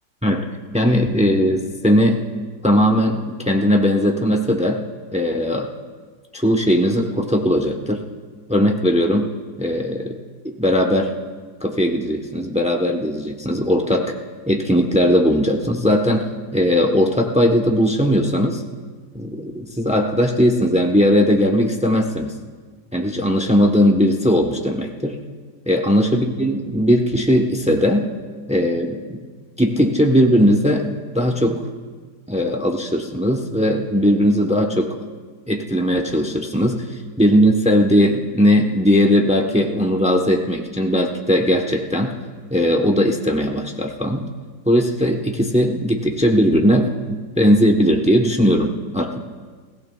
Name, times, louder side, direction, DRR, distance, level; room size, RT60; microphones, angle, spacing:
voice 1, 0.7-2.3 2.6-4.8 5.1-5.7 6.3-8.0 8.5-10.2 10.4-11.1 11.6-14.1 14.5-18.6 19.1-22.3 22.9-25.2 25.7-28.1 28.5-29.2 29.6-30.8 31.1-31.6 32.3-35.0 35.5-36.8 37.2-42.2 42.5-44.3 44.7-49.2, equal, 10° right, 2 dB, 0.3 m, -18 dB
22.0 x 17.0 x 2.3 m, 1.5 s
omnidirectional pair, 1.9 m